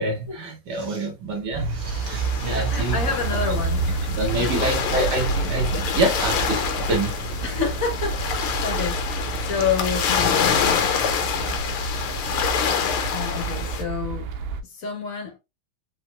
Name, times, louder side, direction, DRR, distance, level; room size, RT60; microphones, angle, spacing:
voice 1, 0.0-3.0 4.2-7.1, right 2 dB, 55° right, 1.6 m, -26 dB
sound 1, 1.5-14.6, right 4 dB, 85° right, 1.5 m, -29 dB
sound 2, 1.8-13.8, left 7 dB, 85° left, 1.8 m, -27 dB
voice 2, 2.5-4.7 7.4-10.9 13.1-14.3 14.6-15.4, left 6 dB, 45° left, 1.8 m, -29 dB
4.9 x 4.0 x 2.2 m
omnidirectional pair, 2.3 m